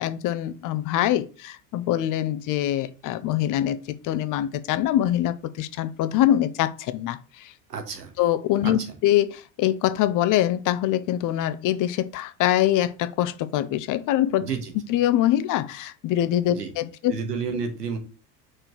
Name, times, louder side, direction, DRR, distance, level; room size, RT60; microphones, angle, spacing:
voice 1, 0.0-7.5 8.2-14.5 14.9-17.1, left 12 dB, 40° left, 0.7 m, -24 dB
voice 2, 7.7-8.1 8.6-8.7 14.4-14.7 16.5-16.7 17.1-18.0, right 5 dB, 80° right, 1.6 m, -30 dB
5.0 x 4.6 x 5.9 m
figure-of-eight pair, 70°, 47 cm